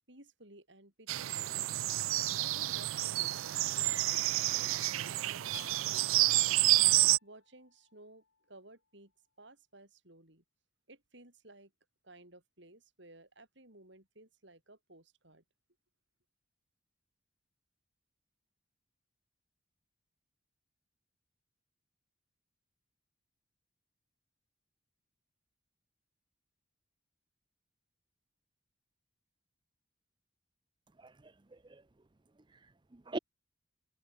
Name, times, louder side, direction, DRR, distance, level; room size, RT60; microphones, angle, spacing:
voice 1, 0.1-1.7 2.3-9.1 9.4-10.4 10.9-11.7 12.0-15.4, right 2 dB, 60° right, 6.6 m, -57 dB
sound 1, 1.1-7.2, right 17 dB, 90° right, 0.4 m, -29 dB
Keyboard (musical), 5.5-8.3, left 8 dB, 85° left, 2.0 m, -58 dB
voice 2, 31.0-31.3 31.6-31.8 32.5-33.2, right 2 dB, 25° right, 0.6 m, -43 dB
head